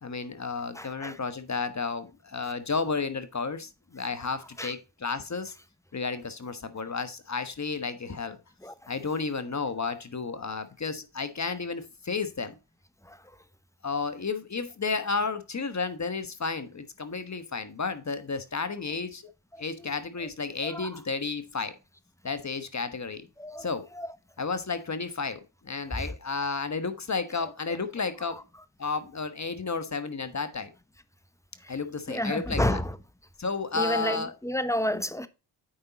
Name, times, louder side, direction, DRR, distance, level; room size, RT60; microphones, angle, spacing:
voice 1, 0.0-5.5 5.9-8.4 8.9-12.5 13.8-19.3 19.6-21.8 22.2-23.3 23.6-23.9 24.4-28.4 28.8-30.7 31.7-32.8 33.4-34.3, left 4 dB, 35° left, 1.2 m, -32 dB
voice 2, 0.7-1.2 4.6-4.7 8.6-8.9 13.0-13.4 19.5-19.9 20.6-21.0 23.4-23.7 23.9-24.1 25.9-26.1 28.3-28.4 31.6-31.7 32.1-33.0 33.7-35.3, left 1 dB, 5° left, 0.9 m, -31 dB
8.6 x 5.4 x 4.0 m
supercardioid pair, 45°, 48 cm